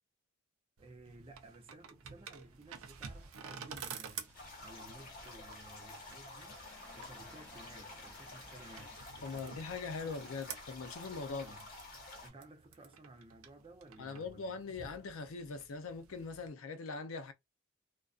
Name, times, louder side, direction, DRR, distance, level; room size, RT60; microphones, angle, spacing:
voice 1, 0.8-9.7 10.0-10.4 11.3-11.7 12.2-14.6, right 2 dB, 25° right, 0.5 m, -56 dB
sound 1, 0.8-16.5, right 6 dB, 85° right, 0.5 m, -51 dB
sound 2, 2.4-10.7 11.1-11.2, equal, 5° left, 0.7 m, -62 dB
sound 3, 4.3-12.3, left 2 dB, 50° left, 1.1 m, -50 dB
voice 2, 9.2-11.5 14.0-17.3, left 4 dB, 80° left, 0.5 m, -41 dB
2.4 x 2.2 x 2.3 m
head